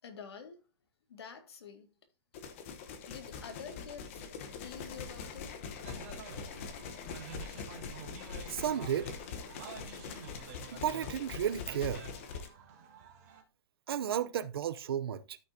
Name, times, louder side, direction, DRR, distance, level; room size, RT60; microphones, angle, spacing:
voice 1, 0.0-0.6 1.1-1.9 3.1-4.2 4.6-5.6 6.4-6.5, left 6 dB, 75° left, 2.1 m, -47 dB
sound 1, 2.3-12.5, left 6 dB, 30° left, 1.0 m, -43 dB
sound 2, 5.8-13.4, right 7 dB, 35° right, 1.8 m, -50 dB
voice 2, 8.5-9.1 10.7-12.0 13.9-15.4, right 9 dB, 65° right, 0.7 m, -33 dB
13.5 x 6.0 x 2.8 m
hypercardioid pair, 180°, 14 cm